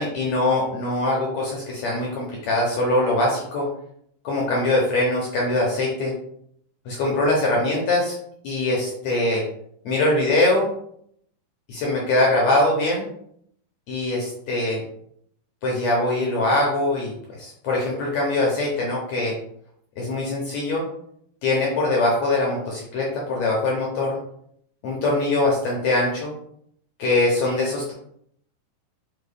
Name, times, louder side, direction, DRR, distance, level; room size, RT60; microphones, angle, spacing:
voice 1, 0.0-3.7 4.2-6.1 6.9-8.1 8.4-9.4 9.9-10.7 11.7-13.1 13.9-14.8 15.6-17.1 17.4-19.3 20.0-20.8 21.4-24.2 24.8-26.3 27.0-27.9, left 2 dB, 75° left, -2 dB, 1.7 m, -22 dB
5.4 x 2.2 x 3.4 m, 0.68 s
omnidirectional pair, 3.8 m